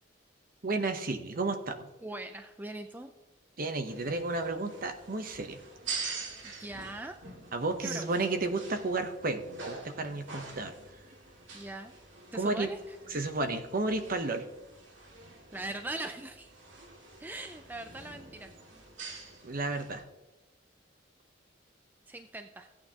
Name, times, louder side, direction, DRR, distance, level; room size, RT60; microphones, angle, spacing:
voice 1, 0.6-1.9 3.6-5.6 7.5-10.7 12.3-12.7 13.1-14.4 19.4-20.0, right 2 dB, 50° right, 7 dB, 0.9 m, -32 dB
voice 2, 2.0-3.1 6.4-7.2 7.8-8.1 11.5-11.9 12.3-13.2 15.5-16.5 17.2-18.5 22.1-22.7, right 2 dB, 10° right, 7 dB, 0.4 m, -41 dB
sound 1, 3.9-20.0, right 4 dB, 80° right, 2.0 m, -46 dB
16.0 x 8.7 x 2.9 m, 1.1 s
head